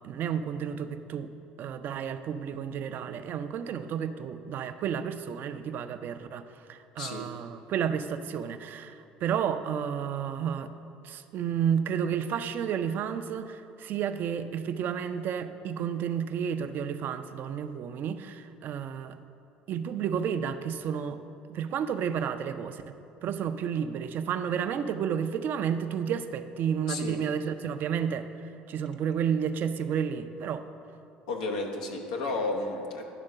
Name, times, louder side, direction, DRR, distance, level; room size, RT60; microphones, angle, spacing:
voice 1, 0.0-1.3 1.6-6.4 6.7-10.7 11.0-19.2 19.7-21.2 21.5-22.9 23.2-28.3 28.7-30.6, right 8 dB, 55° right, 9 dB, 0.5 m, -31 dB
voice 2, 7.0-7.3 26.9-27.2 31.3-33.0, left 2 dB, 85° left, 2 dB, 0.8 m, -32 dB
9.9 x 3.6 x 6.5 m, 2.7 s
hypercardioid pair, 70°, 4 cm